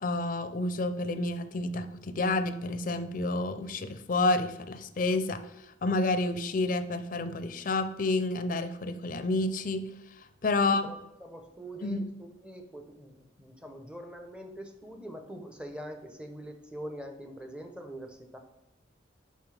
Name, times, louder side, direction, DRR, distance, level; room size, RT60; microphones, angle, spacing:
voice 1, 0.0-5.4 5.8-9.8 10.4-10.8 11.8-12.0, left 2 dB, 45° left, 10 dB, 0.5 m, -29 dB
voice 2, 10.6-18.4, right 1 dB, 5° right, 5 dB, 0.7 m, -44 dB
7.1 x 5.6 x 3.3 m, 0.92 s
head